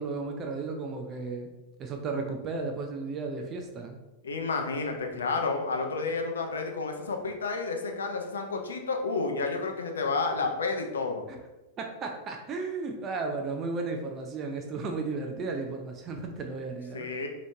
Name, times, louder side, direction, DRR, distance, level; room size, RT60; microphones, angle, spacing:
voice 1, 0.0-1.5 1.8-4.0 11.3-11.4 11.8-17.2, right 3 dB, 30° right, 3 dB, 0.5 m, -34 dB
voice 2, 4.2-11.2 16.9-17.3, left 4 dB, 70° left, 3 dB, 0.6 m, -30 dB
4.3 x 3.0 x 3.4 m, 1.1 s
figure-of-eight pair, 90°, 0 cm